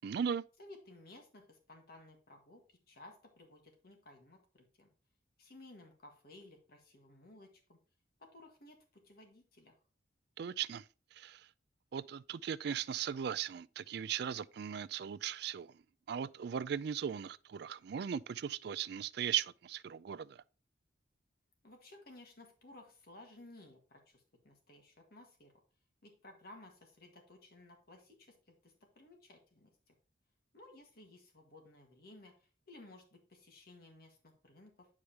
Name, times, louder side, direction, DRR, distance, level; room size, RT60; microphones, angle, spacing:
voice 1, 0.0-0.4 10.4-10.9 11.1-11.5 11.9-15.7 16.1-20.4, right 8 dB, 60° right, 0.3 m, -38 dB
voice 2, 0.6-4.9 5.4-7.8 8.2-9.7 21.6-25.5 26.0-29.9 30.5-34.9, left 2 dB, 55° left, 1.7 m, -57 dB
9.5 x 4.9 x 2.9 m
head